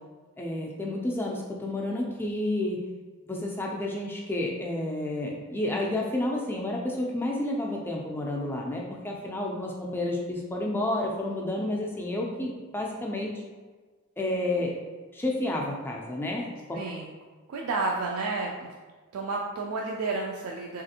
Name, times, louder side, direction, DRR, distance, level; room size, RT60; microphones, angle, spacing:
voice 1, 0.4-2.9 3.3-13.3 14.2-14.7 15.1-16.8, left 1 dB, 10° left, -1 dB, 0.3 m, -30 dB
voice 2, 16.7-17.1 17.5-18.7 19.1-20.8, right 3 dB, 80° right, -1 dB, 0.3 m, -31 dB
3.2 x 2.4 x 2.7 m, 1.4 s
head